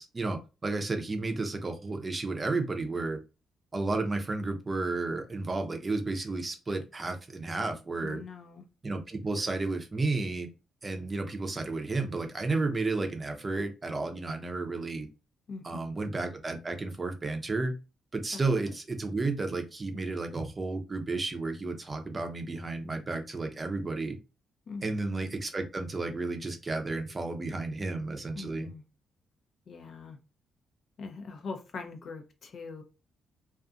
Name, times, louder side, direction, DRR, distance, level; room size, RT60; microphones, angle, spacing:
voice 1, 0.0-3.2 3.7-8.2 8.8-10.5 10.8-15.1 15.6-17.7 18.1-24.2 24.8-28.7, right 3 dB, 35° right, 0.6 m, -32 dB
voice 2, 8.0-8.6 15.5-15.9 24.7-24.9 28.3-28.8 29.7-30.2 31.0-32.8, left 4 dB, 55° left, 0.5 m, -42 dB
2.5 x 2.5 x 2.4 m
hypercardioid pair, 45°, 0 cm